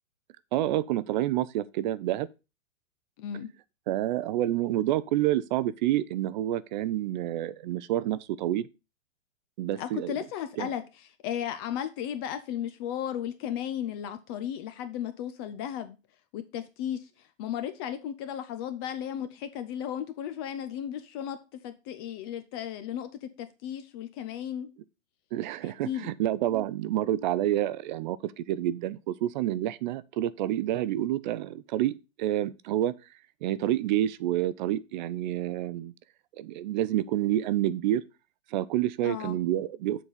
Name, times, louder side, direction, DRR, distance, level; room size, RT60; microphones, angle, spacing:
voice 1, 0.5-2.3 3.9-8.7 9.6-10.1 10.6-10.7 25.3-32.9 33.4-35.9 36.4-38.0 38.5-40.0, right 13 dB, 40° right, 0.5 m, -28 dB
voice 2, 3.2-3.5 9.8-10.8 11.2-16.0 16.3-21.4 21.6-24.7 25.8-26.1 39.0-39.4, left 10 dB, 20° left, 0.4 m, -35 dB
7.4 x 4.1 x 6.6 m
hypercardioid pair, 135°, 38 cm